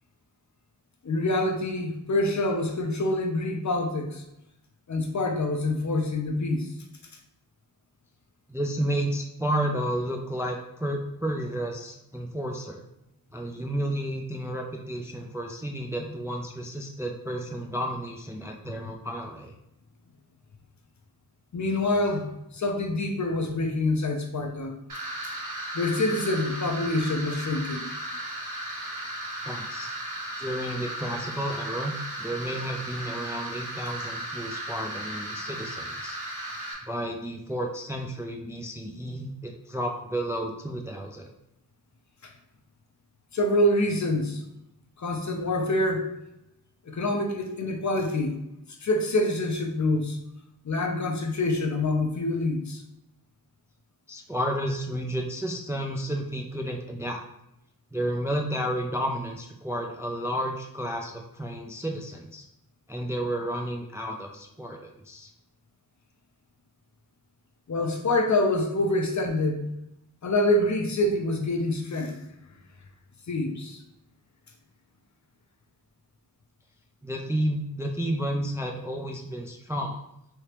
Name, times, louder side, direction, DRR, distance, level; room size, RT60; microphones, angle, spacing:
voice 1, 1.0-4.2 4.9-6.7 21.5-24.8 25.7-27.9 42.2-42.3 43.3-44.4 45.0-46.1 46.9-48.4 48.8-50.2 50.6-52.8 67.7-69.7 70.2-72.2 73.3-73.8, left 2 dB, 50° left, 3 dB, 0.6 m, -26 dB
voice 2, 8.5-12.8 13.3-19.5 29.4-29.9 30.4-36.2 36.8-41.3 54.1-57.2 57.9-62.4 62.9-65.3 77.0-80.0, right 1 dB, 10° right, 2 dB, 0.3 m, -31 dB
sound 1, 24.9-36.7, right 1 dB, 55° right, 1.0 m, -36 dB
3.3 x 2.8 x 2.9 m, 0.84 s
wide cardioid pair, 60°, 38 cm